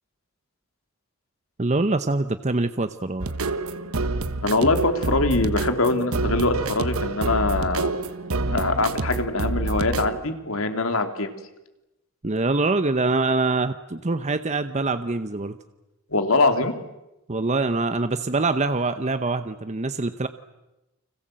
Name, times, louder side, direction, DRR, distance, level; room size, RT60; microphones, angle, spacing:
voice 1, 1.6-3.3 12.2-15.6 17.3-20.3, right 3 dB, 35° right, 10 dB, 0.9 m, -24 dB
sound 1, 3.2-10.2, right 2 dB, 90° right, 1.3 m, -27 dB
voice 2, 4.4-7.9 8.5-11.3 16.1-16.7, left 2 dB, 75° left, 7 dB, 3.1 m, -23 dB
30.0 x 25.5 x 7.7 m, 0.98 s
head